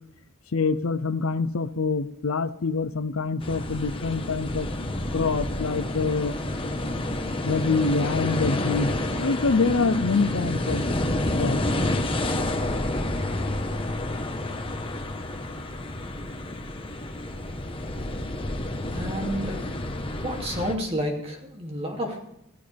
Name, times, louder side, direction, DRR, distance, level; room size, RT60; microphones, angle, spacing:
voice 1, 0.5-4.7 5.1-6.4 7.4-8.9 9.2-11.0 11.4-11.6, left 4 dB, 85° left, 14 dB, 0.6 m, -25 dB
sound 1, 3.4-20.7, left 1 dB, 25° left, 1.2 m, -29 dB
voice 2, 18.7-19.7 20.2-22.2, equal, 30° right, 1 dB, 2.7 m, -30 dB
16.0 x 14.5 x 3.5 m, 0.82 s
head